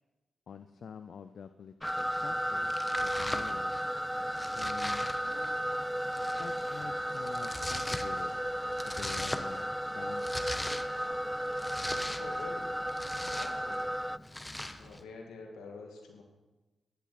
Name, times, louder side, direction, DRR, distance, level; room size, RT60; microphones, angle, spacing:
voice 1, 0.5-2.7 3.0-3.8 4.5-5.6 6.4-8.3 8.9-10.5, left 6 dB, 70° left, 10 dB, 0.5 m, -47 dB
Domestic sounds home sounds, 1.8-15.0, left 1 dB, 15° left, 1.1 m, -42 dB
sound 1, 1.8-14.2, equal, 5° right, 0.3 m, -34 dB
sound 2, 9.6-9.8 11.0-13.7, right 3 dB, 75° right, 4.0 m, -63 dB
voice 2, 12.2-12.7 13.3-13.9 14.8-16.2, left 3 dB, 85° left, 1 dB, 2.2 m, -46 dB
14.5 x 11.0 x 4.2 m, 1.1 s
supercardioid pair, 40°, 0 cm